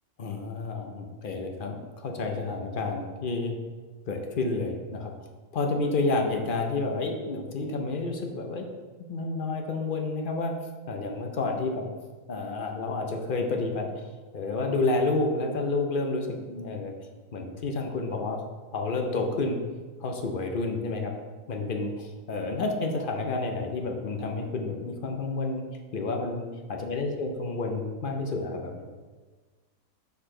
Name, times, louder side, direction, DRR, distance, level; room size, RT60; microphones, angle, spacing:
voice 1, 0.2-3.6 4.1-5.1 5.5-8.6 9.1-10.5 10.9-11.9 12.3-13.9 14.3-16.9 17.3-18.4 18.7-19.6 20.0-21.1 21.5-25.6 25.9-28.8, left 3 dB, 50° left, 3 dB, 0.7 m, -30 dB
6.8 x 4.9 x 3.7 m, 1.4 s
omnidirectional pair, 1.5 m